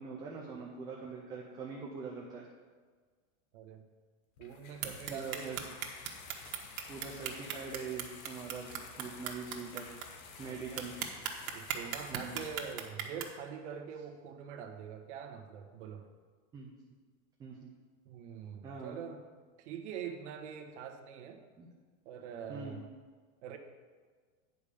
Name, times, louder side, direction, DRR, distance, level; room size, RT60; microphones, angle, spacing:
voice 1, 0.0-2.5 5.1-5.6 6.9-9.9 10.4-10.9 12.1-12.4 16.5-16.7 17.4-17.5 18.6-19.0 21.6-21.7 22.5-22.8, right 5 dB, 10° right, -3 dB, 0.4 m, -43 dB
voice 2, 3.5-3.8 4.4-5.7 10.5-10.8 11.5-16.1 18.0-19.2 19.6-21.4 22.0-22.9 23.4-23.6, right 7 dB, 55° right, 5 dB, 1.3 m, -44 dB
sound 1, 4.4-12.7, left 5 dB, 80° left, 1.4 m, -51 dB
sound 2, 4.8-10.0 10.4-10.5 10.8-13.2, right 10 dB, 90° right, 1.5 m, -37 dB
9.5 x 5.1 x 6.9 m, 1.5 s
supercardioid pair, 160°, 41 cm